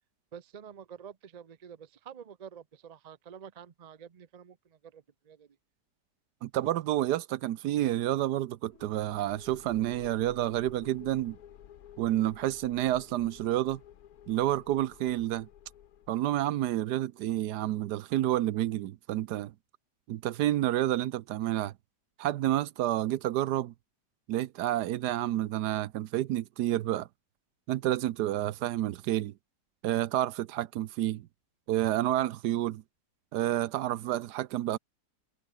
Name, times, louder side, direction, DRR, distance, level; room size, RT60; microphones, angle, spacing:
voice 1, 0.3-5.5, right 8 dB, 40° right, 0.5 m, -48 dB
voice 2, 6.4-11.4 12.0-13.8 14.3-15.5 16.1-19.5 20.1-21.7 22.2-23.7 24.3-27.1 27.7-29.3 29.8-31.3 31.7-32.8 33.3-34.8, right 13 dB, 75° right, 1.2 m, -29 dB
sound 1, 8.7-16.5, left 10 dB, 65° left, 1.4 m, -53 dB
omnidirectional pair, 1.8 m